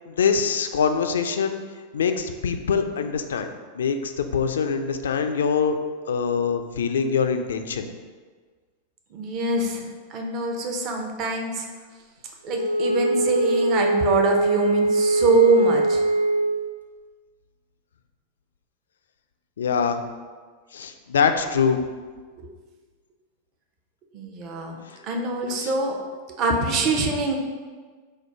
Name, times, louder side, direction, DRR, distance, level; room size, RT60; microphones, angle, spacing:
voice 1, 0.1-1.6 1.9-3.5 3.8-5.8 6.1-7.9 19.6-20.0 20.7-21.8 25.6-25.7, left 6 dB, 65° left, 7 dB, 0.3 m, -24 dB
voice 2, 9.1-11.7 12.4-16.0 22.4-22.5 24.1-24.8 25.0-26.0 26.3-27.4, right 3 dB, 40° right, 2 dB, 0.6 m, -24 dB
Wind instrument woodwind instrument, 12.5-16.6, right 2 dB, 80° right, 0.3 m, -22 dB
4.4 x 2.2 x 4.5 m, 1.5 s
figure-of-eight pair, 90°, 0 cm